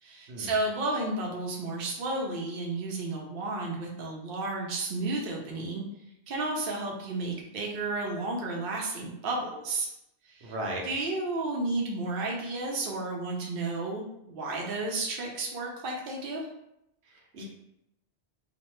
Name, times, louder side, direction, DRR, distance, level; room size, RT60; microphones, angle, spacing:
voice 1, 0.0-5.8 6.3-9.9 10.2-10.5 10.8-16.5, right 2 dB, 65° right, -1 dB, 0.7 m, -32 dB
voice 2, 10.4-10.8 17.1-17.4, right 1 dB, 85° right, -2 dB, 1.0 m, -36 dB
3.0 x 2.2 x 3.0 m, 0.82 s
omnidirectional pair, 1.1 m